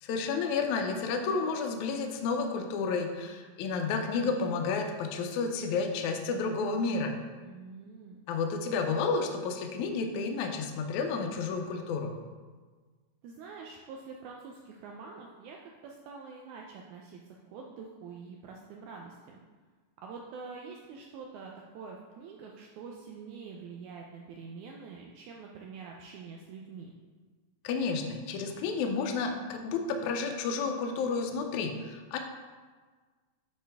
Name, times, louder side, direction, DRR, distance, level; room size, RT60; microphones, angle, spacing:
voice 1, 0.0-7.2 8.3-12.1 27.6-32.2, left 4 dB, 80° left, 3 dB, 1.8 m, -31 dB
voice 2, 7.4-8.2 13.2-15.6 15.8-17.2 17.5-19.4 20.0-26.9, right 5 dB, 80° right, 0 dB, 1.7 m, -46 dB
8.5 x 4.1 x 3.4 m, 1.4 s
omnidirectional pair, 3.8 m